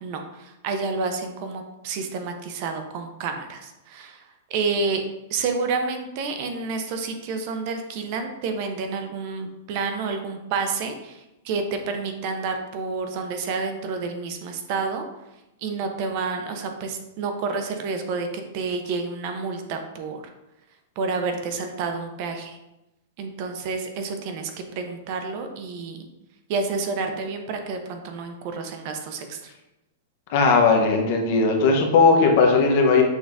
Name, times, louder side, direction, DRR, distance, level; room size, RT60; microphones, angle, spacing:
voice 1, 0.0-5.0 5.3-15.0 15.6-20.2 21.0-22.6 23.2-26.1 26.5-29.5, right 4 dB, 40° right, 5 dB, 0.5 m, -29 dB
voice 2, 30.3-33.0, left 4 dB, 45° left, 2 dB, 0.8 m, -17 dB
6.3 x 2.5 x 3.4 m, 0.95 s
supercardioid pair, 160°, 0 cm